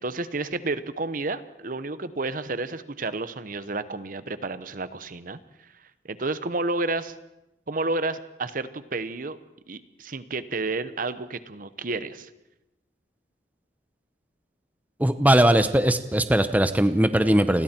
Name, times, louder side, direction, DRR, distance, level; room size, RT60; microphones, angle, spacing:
voice 1, 0.0-5.7 6.0-7.1 7.7-9.4 9.7-12.3, right 3 dB, 50° right, 13 dB, 1.0 m, -31 dB
voice 2, 15.0-17.6, right 1 dB, 10° right, 10 dB, 0.8 m, -20 dB
29.0 x 21.0 x 4.5 m, 0.91 s
head